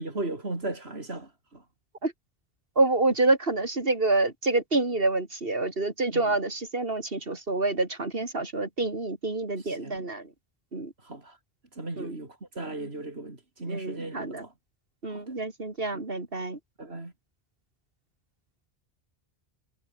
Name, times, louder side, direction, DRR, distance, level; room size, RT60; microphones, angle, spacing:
voice 1, 0.0-1.6 6.1-6.3 9.6-10.0 11.0-11.4 11.8-14.5 15.1-15.3 15.9-16.0 16.8-17.1, right 2 dB, 90° right, 4.4 m, -37 dB
voice 2, 2.8-10.3 10.7-10.9 12.0-12.2 13.7-14.4 15.0-16.6, right 2 dB, 65° right, 3.6 m, -27 dB
omnidirectional pair, 1.0 m